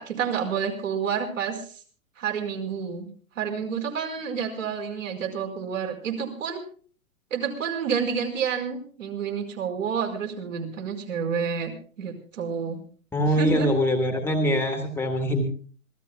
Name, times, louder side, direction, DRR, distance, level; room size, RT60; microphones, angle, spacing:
voice 1, 0.0-1.8 2.2-3.1 3.3-6.6 7.3-12.8 13.3-13.7, right 6 dB, 60° right, 3 dB, 5.1 m, -29 dB
voice 2, 13.1-15.4, equal, 5° left, 5 dB, 1.7 m, -23 dB
26.0 x 16.0 x 2.3 m, 0.43 s
figure-of-eight pair, 120°, 43 cm